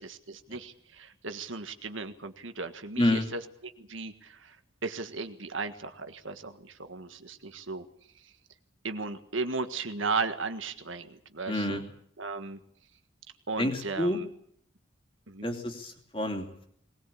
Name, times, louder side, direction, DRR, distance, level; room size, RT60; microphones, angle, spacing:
voice 1, 0.0-4.5 4.8-7.8 8.8-11.8 12.2-12.6 13.5-14.3 15.3-15.5, right 4 dB, 75° right, 8 dB, 1.7 m, -36 dB
voice 2, 3.0-3.3 11.5-11.8 13.6-14.2 15.4-16.6, left 1 dB, 25° left, 3 dB, 2.9 m, -28 dB
20.5 x 20.0 x 8.6 m, 0.67 s
head